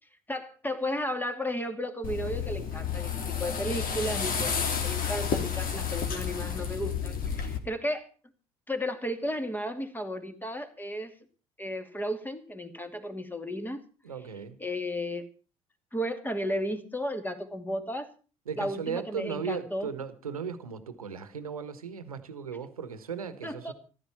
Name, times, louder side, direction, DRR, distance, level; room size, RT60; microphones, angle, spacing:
voice 1, 0.3-8.1 8.7-11.1 11.6-13.8 14.6-15.2 15.9-18.1 18.6-19.9 23.4-23.7, equal, 10° left, 2.5 m, -34 dB
sound 1, 2.0-7.6, left 7 dB, 50° left, 2.8 m, -31 dB
voice 2, 14.0-14.6 18.4-23.7, right 6 dB, 90° right, 1.2 m, -36 dB
14.5 x 13.0 x 5.7 m
hypercardioid pair, 55°, 18 cm